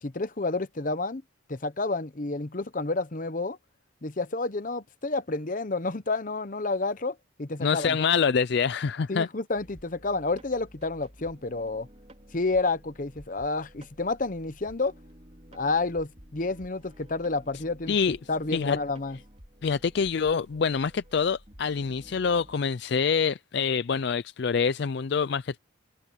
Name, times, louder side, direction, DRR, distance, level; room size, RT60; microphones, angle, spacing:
voice 1, 0.0-1.2 1.5-3.6 4.0-8.0 9.1-11.9 12.3-14.9 15.5-18.0 18.3-19.2, left 3 dB, 40° left, 0.8 m, -30 dB
voice 2, 7.6-9.3 17.9-18.2 18.5-18.8 19.6-25.6, left 6 dB, 55° left, 0.4 m, -26 dB
sound 1, 9.5-22.6, equal, 30° right, 4.6 m, -52 dB
open air
head